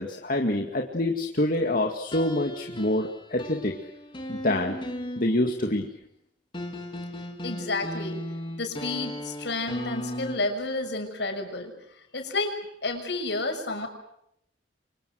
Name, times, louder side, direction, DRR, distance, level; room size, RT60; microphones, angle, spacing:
voice 1, 0.0-3.8 4.3-4.8 5.2-5.9, left 1 dB, 50° left, 3 dB, 2.2 m, -26 dB
sound 1, 2.1-5.6 6.5-10.4, left 1 dB, 25° left, 3.1 m, -36 dB
voice 2, 7.4-8.3 8.6-11.7 12.1-13.9, left 2 dB, 70° left, 5 dB, 6.6 m, -30 dB
29.5 x 25.5 x 6.5 m, 0.74 s
head